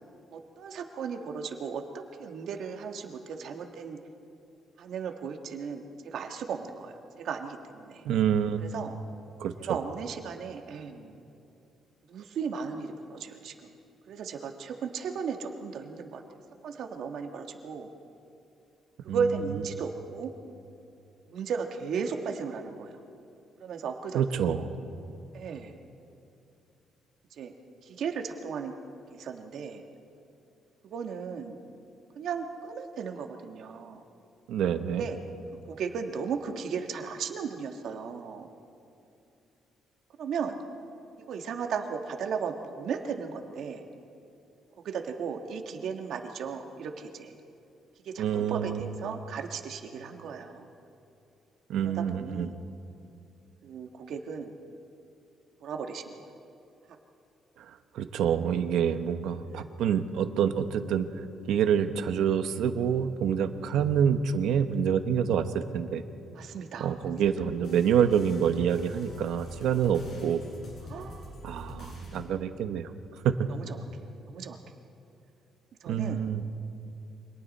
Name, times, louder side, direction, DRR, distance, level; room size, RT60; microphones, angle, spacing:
voice 1, 0.3-4.0 4.8-8.0 8.6-8.9 9.7-11.2 12.1-13.7 14.1-16.2 16.6-17.9 19.0-20.3 21.3-22.9 23.6-24.7 25.3-25.8 27.3-27.5 27.8-28.7 29.1-29.8 30.8-31.6 32.1-34.0 34.9-35.2 35.7-38.5 40.2-40.6 41.3-43.8 44.8-47.3 48.0-50.7 51.8-52.6 53.6-54.5 55.6-56.0 59.5-59.6 66.3-66.9 70.9-71.3 73.5-73.8 74.3-74.6 75.8-76.2, right 6 dB, 65° right, 4 dB, 1.7 m, -35 dB
voice 2, 8.0-8.7 9.4-9.8 19.1-19.3 24.1-24.6 34.5-35.0 48.2-48.8 51.7-52.5 57.6-61.1 61.5-66.0 66.8-70.4 71.4-72.9 73.2-73.5 75.9-76.4, right 8 dB, 85° right, 8 dB, 1.2 m, -27 dB
sound 1, 67.2-72.2, left 2 dB, 55° left, 6.6 m, -45 dB
29.0 x 25.5 x 4.3 m, 2.7 s
cardioid pair, 150°, 0 cm